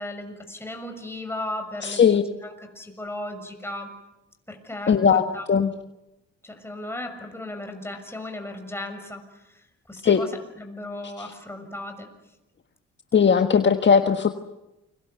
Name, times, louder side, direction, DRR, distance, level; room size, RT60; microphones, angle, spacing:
voice 1, 0.0-2.1 2.4-3.9 4.5-5.5 6.4-10.3 10.6-12.1, left 1 dB, 10° left, 5 dB, 6.3 m, -36 dB
voice 2, 1.8-2.2 4.9-5.7 10.0-10.2 11.0-11.3 13.1-14.3, left 6 dB, 40° left, 7 dB, 1.5 m, -19 dB
29.0 x 24.0 x 8.2 m, 0.94 s
cardioid pair, 90°, 30 cm